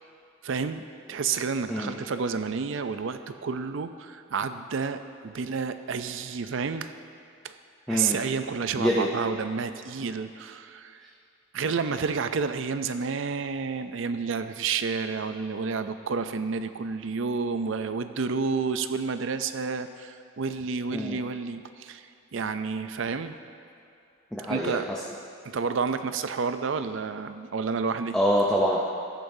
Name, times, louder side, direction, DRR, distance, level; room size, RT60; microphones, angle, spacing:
voice 1, 0.4-6.9 7.4-7.5 7.9-11.1 11.5-22.1 22.3-23.4 24.5-24.9 25.4-28.1, right 5 dB, 60° right, 10 dB, 0.4 m, -30 dB
voice 2, 7.9-8.2 8.8-9.1 20.9-21.2 24.3-25.0 28.1-29.0, equal, 5° left, -5 dB, 0.5 m, -25 dB
14.0 x 9.8 x 2.7 m, 2.6 s
head